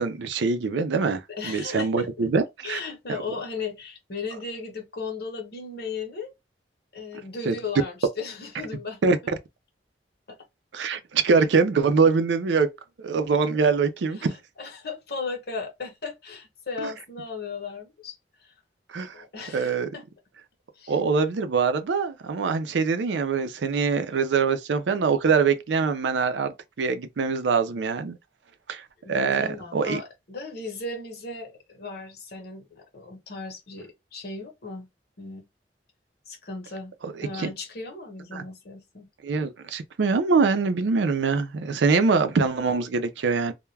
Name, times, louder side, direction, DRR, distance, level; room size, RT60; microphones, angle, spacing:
voice 1, 0.0-2.8 7.5-7.6 9.0-9.2 10.7-12.7 13.0-14.3 16.8-16.9 18.9-19.1 19.5-19.9 20.9-28.2 28.7-28.8 29.1-30.0 37.0-37.1 38.3-38.4 39.2-43.5, right 5 dB, 80° right, 0.4 m, -23 dB
voice 2, 1.3-2.1 2.6-6.3 6.9-9.1 10.3-10.4 14.2-18.2 18.4-18.5 19.1-20.0 20.7-21.0 29.0-34.9 35.2-35.4 36.3-36.9 37.2-39.1, left 4 dB, 60° left, 0.9 m, -36 dB
2.2 x 2.1 x 3.2 m
head